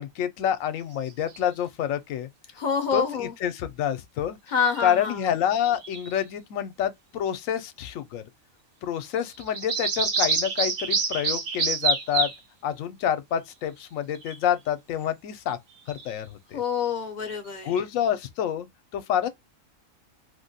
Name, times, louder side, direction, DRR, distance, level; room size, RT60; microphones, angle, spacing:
voice 1, 0.0-2.3 2.9-4.4 4.8-8.2 8.8-12.3 12.6-15.6 15.9-16.6 17.6-18.7 18.9-19.3, left 9 dB, 80° left, 1.0 m, -28 dB
sound 1, 1.1-1.4 4.8-5.0 5.6-6.2 9.2-12.4 14.1-14.4 15.7-16.2, right 4 dB, 85° right, 1.3 m, -27 dB
voice 2, 2.6-3.3 4.5-5.2 16.5-17.7, left 6 dB, 50° left, 0.5 m, -26 dB
2.9 x 2.2 x 2.6 m
omnidirectional pair, 1.4 m